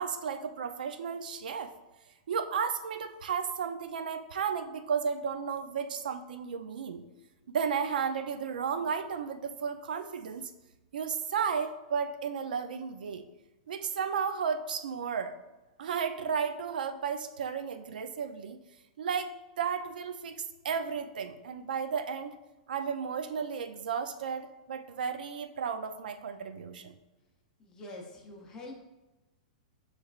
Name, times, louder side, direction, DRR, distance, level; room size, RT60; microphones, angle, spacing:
voice 1, 0.0-1.7 2.3-7.0 7.5-10.4 10.9-13.2 13.7-15.4 15.8-18.6 19.0-22.4 22.7-27.0, right 6 dB, 80° right, 9 dB, 0.4 m, -33 dB
voice 2, 27.6-28.7, left 2 dB, 15° left, 1 dB, 0.5 m, -45 dB
6.5 x 3.2 x 2.4 m, 1.1 s
supercardioid pair, 180°, 5 cm